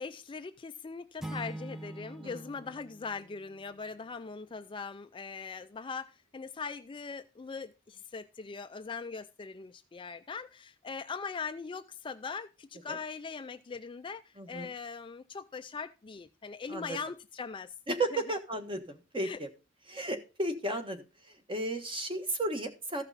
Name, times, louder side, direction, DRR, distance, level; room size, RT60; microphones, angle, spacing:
voice 1, 0.0-17.7 18.1-18.2 19.2-19.4, left 5 dB, 25° left, 0.4 m, -41 dB
sound 1, 1.2-4.0, right 1 dB, ahead, 0.8 m, -44 dB
voice 2, 14.4-14.7 16.7-17.0 17.9-19.5 19.9-21.0 21.5-23.0, right 2 dB, 25° right, 1.4 m, -34 dB
14.0 x 5.8 x 4.0 m
head